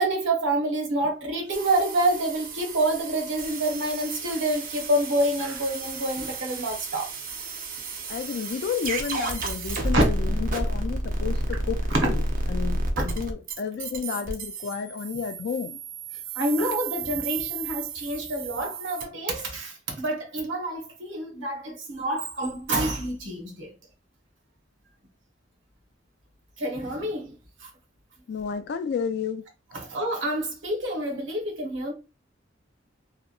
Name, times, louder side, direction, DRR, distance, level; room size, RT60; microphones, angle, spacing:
voice 1, 0.0-7.1 9.9-10.0 11.9-12.1 13.0-13.1 16.3-23.7 26.6-27.3 27.6-27.7 29.7-31.9, right 1 dB, 65° right, 0.9 m, -27 dB
sound 1, 1.5-19.0, right 2 dB, 45° right, 0.5 m, -32 dB
voice 2, 8.1-12.2 12.5-15.8 28.3-29.5, left 6 dB, 55° left, 0.3 m, -31 dB
2.8 x 2.2 x 2.3 m
head